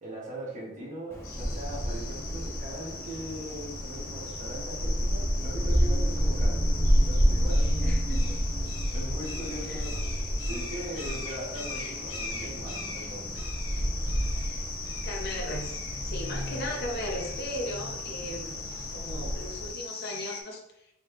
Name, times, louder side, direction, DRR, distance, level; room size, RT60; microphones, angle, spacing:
voice 1, 0.0-7.9 8.9-10.0 10.5-13.4 16.4-16.8, right 1 dB, 35° right, -4 dB, 1.3 m, -40 dB
Wind, 1.1-19.7, equal, 15° left, 0.7 m, -30 dB
sound 1, 1.2-20.4, left 4 dB, 75° left, 1.1 m, -40 dB
voice 2, 7.8-8.4 9.7-9.8 15.0-18.6 18.9-20.6, left 1 dB, 50° left, 0 dB, 0.8 m, -37 dB
4.2 x 3.1 x 3.2 m, 0.84 s
head